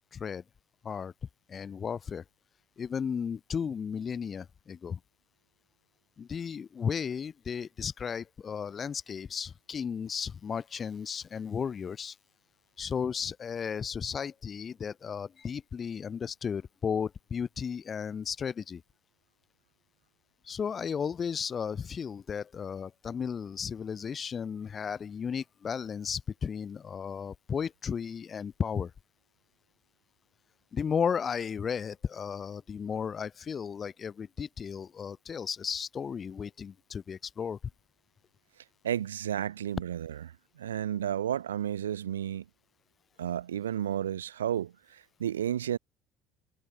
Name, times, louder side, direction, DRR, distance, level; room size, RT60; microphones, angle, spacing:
voice 1, 0.1-0.4 0.8-1.1 1.5-2.2 2.8-5.0 6.2-12.2 12.8-18.8 20.4-28.9 30.7-37.6, left 7 dB, 40° left, 0.7 m, -34 dB
voice 2, 38.8-40.2 40.6-42.4 43.2-45.8, right 10 dB, 85° right, 0.3 m, -32 dB
hypercardioid pair, 60°, 0 cm